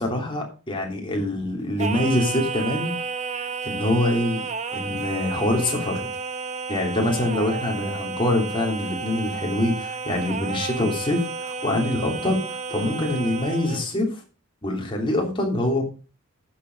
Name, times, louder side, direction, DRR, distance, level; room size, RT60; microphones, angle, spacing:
voice 1, 0.0-2.9 3.4-4.4 4.7-6.1 6.7-14.2 14.6-15.8, left 1 dB, 25° left, 0 dB, 3.1 m, -25 dB
Singing, 1.8-13.9, right 4 dB, 30° right, 0.8 m, -32 dB
10.0 x 7.2 x 5.3 m, 0.34 s
head